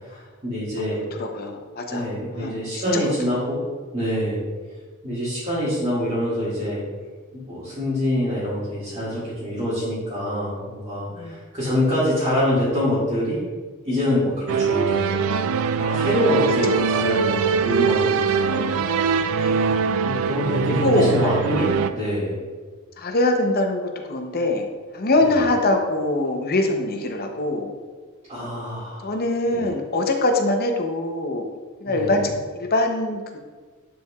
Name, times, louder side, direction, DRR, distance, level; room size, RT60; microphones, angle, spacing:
voice 1, 0.1-1.0 1.9-3.6 3.9-4.4 5.0-6.8 7.3-13.4 13.8-15.3 15.8-19.2 20.0-22.4 25.2-25.4 28.3-29.1 29.5-29.7 31.8-32.2, left 1 dB, 30° right, -12 dB, 1.9 m, -25 dB
voice 2, 1.2-2.1 2.3-2.6 2.9-3.0 11.1-11.4 15.8-16.1 16.6-16.8 19.3-19.8 20.7-21.1 23.0-24.7 24.9-27.7 29.0-31.4 31.8-33.4, left 2 dB, 45° left, 3 dB, 0.7 m, -23 dB
sound 1, 14.5-21.9, right 5 dB, 65° right, 0.3 m, -22 dB
10.0 x 4.6 x 2.4 m, 1.4 s
head